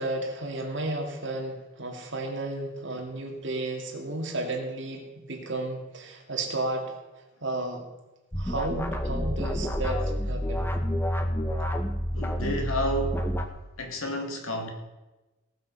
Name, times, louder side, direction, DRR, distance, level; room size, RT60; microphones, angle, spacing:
voice 1, 0.0-7.0 7.4-7.8 8.4-10.7, right 2 dB, 60° right, 1 dB, 2.4 m, -33 dB
sound 1, 8.3-13.5, equal, 10° left, 0.9 m, -29 dB
voice 2, 12.1-13.3 13.8-14.7, equal, 90° left, 3 dB, 2.4 m, -30 dB
18.5 x 6.5 x 5.5 m, 1.1 s
head